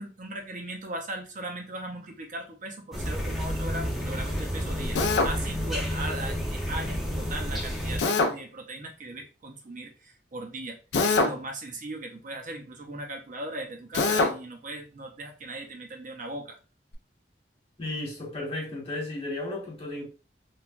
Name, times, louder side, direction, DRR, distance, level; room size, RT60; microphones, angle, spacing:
voice 1, 0.0-5.0 5.2-16.6, right 2 dB, 45° right, 0.5 m, -38 dB
sound 1, 2.9-8.0, equal, ahead, 0.5 m, -30 dB
Drill, 4.9-5.3 8.0-8.3 10.9-11.4 13.9-14.3, left 3 dB, 75° left, 0.4 m, -23 dB
voice 2, 17.8-20.1, left 2 dB, 35° left, 1.0 m, -34 dB
3.1 x 2.2 x 2.4 m
head